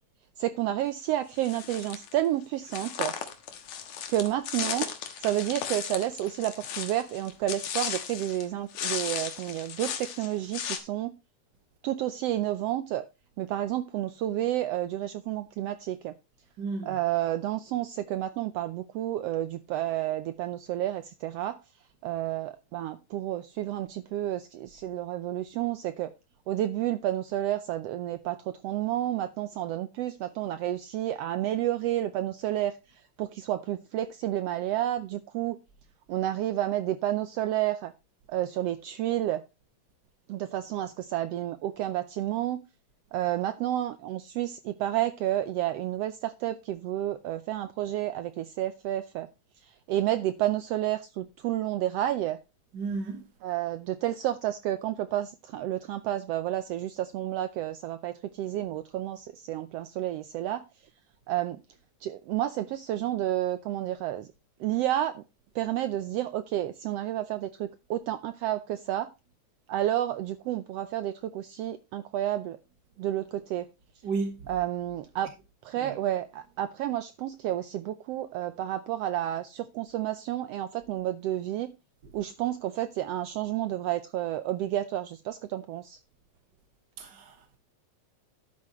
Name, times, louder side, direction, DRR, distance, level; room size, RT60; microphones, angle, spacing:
voice 1, 0.4-3.2 4.1-4.9 5.2-11.1 11.8-13.1 13.4-16.1 16.9-21.6 22.0-26.1 26.5-32.8 33.2-35.6 36.1-37.9 38.3-39.4 40.3-42.6 43.1-49.3 49.6-52.4 53.4-60.7 61.3-61.6 62.0-64.3 64.6-65.2 65.5-69.1 69.7-72.6 73.0-73.7 74.5-75.3 75.6-81.7 82.1-86.0, right 13 dB, 80° right, 1.4 m, -30 dB
sound 1, 1.4-2.1 2.7-8.5 8.7-10.8, left 8 dB, 70° left, 2.5 m, -35 dB
voice 2, 16.6-17.0 52.7-53.2 74.0-74.5 75.7-76.0 82.0-82.1 87.0-87.6, right 4 dB, 50° right, 1.4 m, -34 dB
11.5 x 8.1 x 3.0 m
omnidirectional pair, 3.4 m